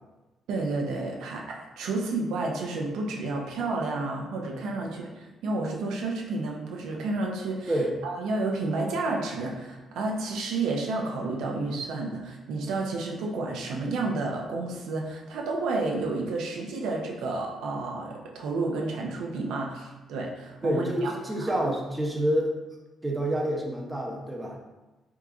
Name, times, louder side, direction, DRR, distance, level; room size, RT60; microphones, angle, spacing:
voice 1, 0.5-7.7 8.0-21.1 21.4-21.6, right 3 dB, 90° right, 0 dB, 0.5 m, -31 dB
voice 2, 20.6-22.5 23.0-24.6, right 1 dB, 10° right, -1 dB, 0.6 m, -28 dB
3.5 x 2.8 x 2.4 m, 1.1 s
cardioid pair, 100°, 0 cm